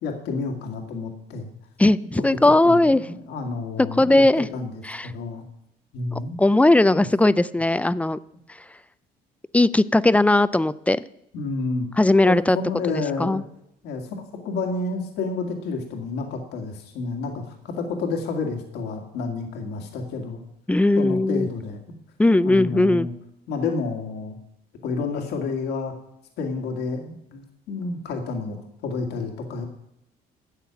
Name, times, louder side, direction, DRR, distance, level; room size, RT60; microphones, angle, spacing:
voice 1, 0.0-1.5 2.6-5.5 5.9-6.4 6.9-7.1 11.3-11.9 12.2-13.4 13.8-20.4 21.0-21.8 22.4-23.1 23.5-24.4 24.8-25.9 26.4-29.6, left 4 dB, 85° left, 2 dB, 1.9 m, -30 dB
voice 2, 1.8-3.0 4.0-4.5 4.9-5.1 6.4-8.2 9.5-11.0 12.0-12.6 12.9-13.4 20.7-21.5 22.2-23.1, left 2 dB, 10° left, 16 dB, 0.3 m, -18 dB
12.5 x 8.2 x 5.8 m, 0.78 s
cardioid pair, 110°, 17 cm